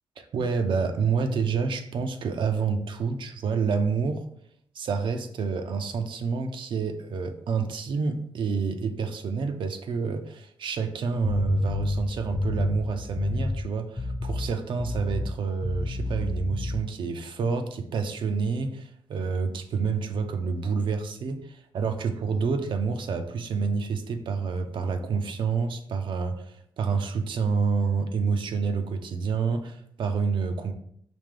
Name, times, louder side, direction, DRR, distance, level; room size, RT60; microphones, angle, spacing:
voice 1, 0.2-4.2 4.7-30.7, right 5 dB, 70° right, 7 dB, 0.6 m, -28 dB
sound 1, 11.2-13.6 14.0-14.5 14.8-15.3 15.6-16.8, left 2 dB, 15° left, 0.4 m, -28 dB
5.1 x 2.8 x 3.7 m, 0.68 s
cardioid pair, 80°, 9 cm